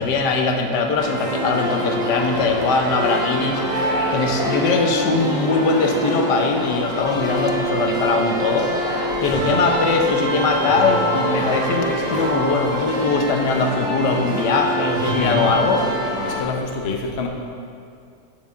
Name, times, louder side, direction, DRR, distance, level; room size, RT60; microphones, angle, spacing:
voice 1, 0.0-8.7 9.2-15.8, left 4 dB, 80° left, 3 dB, 1.4 m, -21 dB
sound 1, 1.0-16.4, right 1 dB, ahead, 1.6 m, -24 dB
voice 2, 15.1-15.5 16.2-17.3, left 4 dB, 45° left, 1 dB, 1.0 m, -26 dB
6.9 x 6.3 x 7.4 m, 2.3 s
omnidirectional pair, 1.8 m